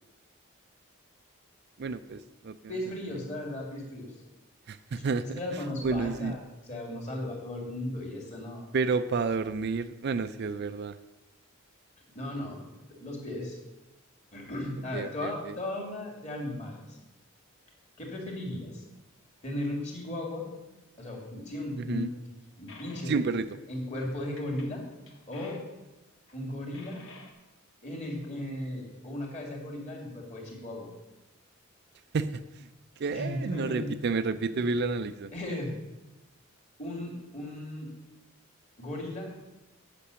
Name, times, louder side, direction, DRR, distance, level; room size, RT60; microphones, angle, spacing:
voice 1, 1.8-2.5 4.7-5.4 5.8-6.4 8.7-11.0 14.9-15.5 21.8-22.1 23.1-23.5 32.1-32.3 32.6-32.7 33.0-35.3, right 4 dB, 50° right, 12 dB, 0.4 m, -30 dB
voice 2, 2.7-4.1 5.2-6.4 6.6-8.7 12.1-12.6 12.9-13.6 14.3-17.0 18.0-18.8 19.4-20.5 21.0-23.1 23.7-24.8 25.3-25.6 26.3-27.0 27.8-30.9 33.1-33.9 34.4-34.7 35.3-35.7 36.8-37.9 38.8-39.3, left 1 dB, 35° left, -1 dB, 2.4 m, -36 dB
sound 1, 22.7-23.3 24.4-24.7 25.1-25.7 26.0-26.4 26.7-27.3, left 3 dB, 65° left, 1.5 m, -51 dB
8.4 x 6.0 x 6.8 m, 1.0 s
head